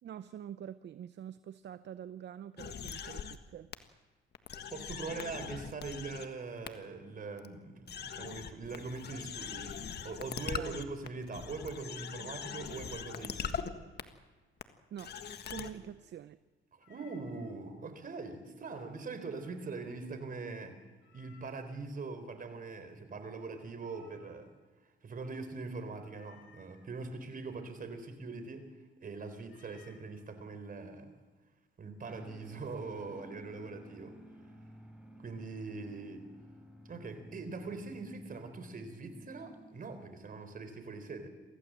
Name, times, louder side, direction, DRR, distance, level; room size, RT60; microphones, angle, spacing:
voice 1, 0.0-3.7 10.5-10.8 14.9-15.1 15.5-16.4, right 10 dB, 60° right, 14 dB, 0.8 m, -46 dB
sound 1, 2.6-3.4 3.7-3.8 4.3-6.2 6.6-6.7 7.4-7.5 7.9-13.7 14.0-14.1 14.6-14.7 15.0-15.7, left 7 dB, 55° left, 1.7 m, -41 dB
voice 2, 4.6-9.7 10.0-13.8 16.9-20.8 21.1-24.5 25.0-28.7 29.0-31.1 31.8-34.2 35.2-36.3 36.8-41.3, right 3 dB, 45° right, 9 dB, 4.1 m, -42 dB
Meow, 16.8-17.5 21.0-21.8 23.8-24.6 26.1-26.8 29.4-30.1, left 7 dB, 75° left, 5.5 m, -62 dB
sound 2, 32.0-40.3, equal, 5° right, 6.4 m, -54 dB
24.5 x 15.5 x 7.6 m, 1.3 s
cardioid pair, 90°, 20 cm